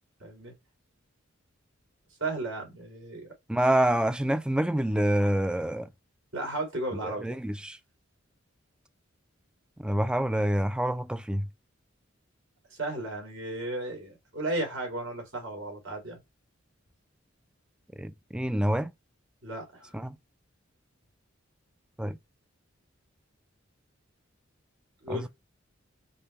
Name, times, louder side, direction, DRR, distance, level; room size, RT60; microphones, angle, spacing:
voice 1, 0.2-0.5 2.2-3.3 6.3-7.4 12.8-16.2 19.4-20.0 25.0-25.3, right 2 dB, 75° right, 2.3 m, -34 dB
voice 2, 3.5-5.9 7.0-7.8 9.8-11.5 18.0-18.9 19.9-20.2 22.0-22.2 25.1-25.3, right 1 dB, 5° right, 0.3 m, -27 dB
5.3 x 2.1 x 4.2 m
head